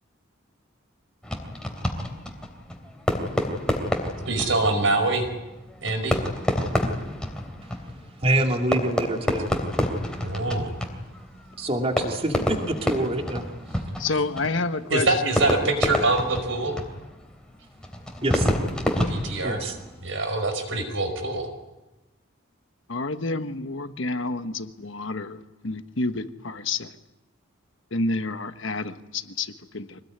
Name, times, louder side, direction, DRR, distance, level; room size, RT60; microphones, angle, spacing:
Fireworks, 1.2-20.0, equal, 5° left, 3.2 m, -29 dB
voice 1, 4.2-5.3 5.8-6.2 10.2-10.7 14.9-16.8 18.9-19.6 20.0-21.5, right 2 dB, 70° right, 7 dB, 5.1 m, -24 dB
voice 2, 8.2-9.5 11.6-13.4 14.2-14.6 18.2-18.5 19.4-19.8, right 1 dB, 30° right, 3 dB, 2.6 m, -26 dB
voice 3, 14.0-15.4 22.9-26.9 27.9-30.0, left 3 dB, 65° left, 9 dB, 1.3 m, -29 dB
25.0 x 19.5 x 9.6 m, 1.1 s
head